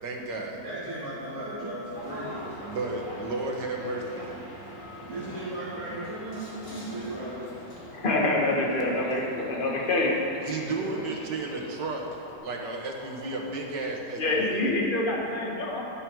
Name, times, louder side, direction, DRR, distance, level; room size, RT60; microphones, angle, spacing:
voice 1, 0.0-0.6 2.6-4.3 10.5-12.0 12.4-14.7, right 3 dB, 85° right, 1 dB, 2.0 m, -33 dB
voice 2, 0.6-2.4 5.0-7.5 10.6-11.2, right 1 dB, 60° right, -13 dB, 3.5 m, -36 dB
sound 1, 2.0-12.4, equal, 50° left, 2.2 m, -44 dB
voice 3, 7.9-10.6 14.2-15.8, left 2 dB, 30° left, -2 dB, 1.7 m, -26 dB
11.5 x 11.0 x 4.7 m, 2.9 s
omnidirectional pair, 1.8 m